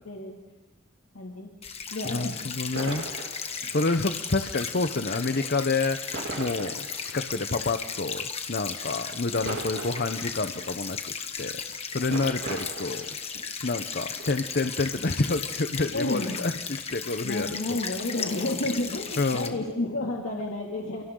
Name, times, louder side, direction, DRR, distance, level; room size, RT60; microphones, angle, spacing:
voice 1, 0.0-0.4 1.1-1.5 1.9-2.5 12.5-12.6 15.9-16.4 17.2-21.0, left 2 dB, 60° left, -1 dB, 2.7 m, -31 dB
sound 1, 1.6-19.5, left 6 dB, 30° left, 1.5 m, -36 dB
voice 2, 2.0-3.1 3.7-11.6 11.9-13.1 13.6-17.8 19.2-19.6, left 3 dB, 45° left, 8 dB, 0.9 m, -29 dB
sound 2, 2.8-3.7 5.2-5.7 6.1-7.1 7.6-7.7 9.1-10.7 11.5-11.7 12.1-13.5 14.1-14.8 15.3-15.4, right 2 dB, 50° right, 2.9 m, -39 dB
29.0 x 28.5 x 3.9 m, 1.1 s
head